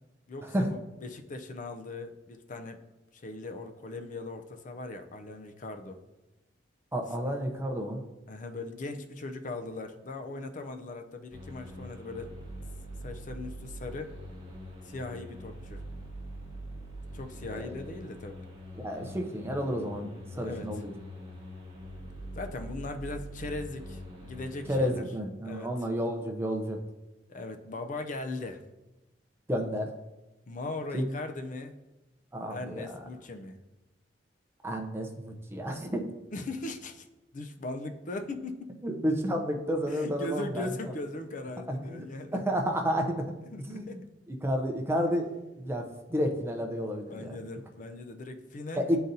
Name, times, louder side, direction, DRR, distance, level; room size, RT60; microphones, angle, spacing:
voice 1, 0.3-2.8 3.1-6.0 8.3-12.3 13.0-14.1 14.8-15.8 17.1-18.5 20.3-20.7 22.3-25.0 25.4-25.7 27.3-28.6 30.5-31.8 32.5-33.6 36.3-37.1 37.3-38.7 39.9-42.4 43.4-44.0 47.1-49.0, left 2 dB, 45° left, 6 dB, 0.5 m, -39 dB
voice 2, 6.9-8.0 17.5-17.7 18.8-20.9 24.7-26.8 29.5-29.9 30.9-31.1 32.3-32.9 34.6-36.0 38.8-40.7 41.7-42.1 42.3-43.3 43.6-44.0 44.3-45.3 45.6-47.4 48.8-49.0, equal, 15° right, 2 dB, 0.6 m, -31 dB
sound 1, 11.3-24.9, equal, 30° right, 1.3 m, -43 dB
9.9 x 3.9 x 2.7 m, 1.1 s
head